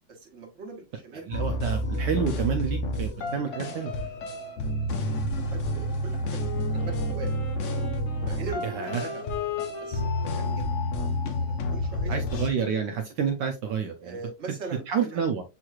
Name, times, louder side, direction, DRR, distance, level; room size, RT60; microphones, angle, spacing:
voice 1, 0.1-1.4 3.5-4.3 4.8-4.9 5.1-7.4 8.2-10.7 11.2-12.4 14.0-15.3, right 4 dB, 40° right, 1 dB, 1.2 m, -42 dB
sound 1, 1.3-12.5, left 1 dB, 70° left, 0.7 m, -29 dB
voice 2, 1.3-3.9 8.8-9.0 12.1-14.1 14.9-15.4, right 7 dB, 75° right, 5 dB, 1.0 m, -29 dB
Wind instrument woodwind instrument, 6.3-13.0, left 6 dB, 50° left, 1.3 m, -39 dB
6.4 x 3.0 x 2.3 m, 0.28 s
omnidirectional pair, 2.2 m